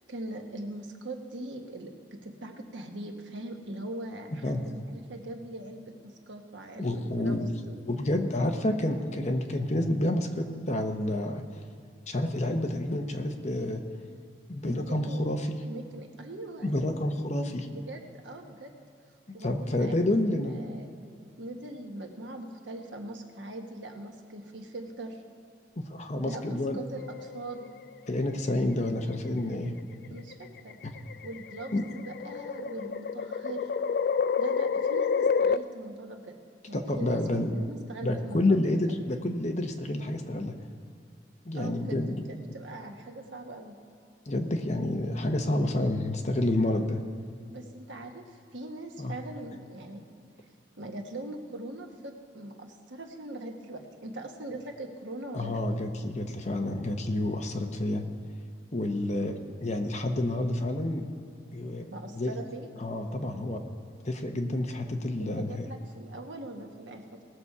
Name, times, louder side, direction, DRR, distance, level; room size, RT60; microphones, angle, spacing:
voice 1, 0.1-7.4 7.7-7.8 14.6-15.4 15.7-16.8 17.7-18.7 19.3-20.9 21.4-25.2 26.2-27.7 30.1-30.8 31.2-33.7 34.4-36.4 36.7-37.2 37.5-39.0 41.5-43.7 47.5-50.0 50.8-55.6 61.9-62.7 65.2-67.2, right 1 dB, 80° right, 3 dB, 1.3 m, -41 dB
voice 2, 6.8-7.5 7.9-11.4 12.1-13.8 14.5-15.6 16.6-17.7 19.4-20.6 25.8-26.8 28.1-29.7 31.7-31.8 36.7-37.5 38.0-40.5 41.5-42.2 44.3-47.0 49.0-49.1 55.3-58.0 58.7-59.3 59.6-61.0 61.5-62.3 62.8-63.6 64.0-65.7, left 1 dB, 40° left, 4 dB, 0.9 m, -29 dB
sound 1, 27.0-27.8 29.0-29.4 30.3-35.6, left 6 dB, 55° left, 0.3 m, -29 dB
19.0 x 6.9 x 4.8 m, 2.3 s
head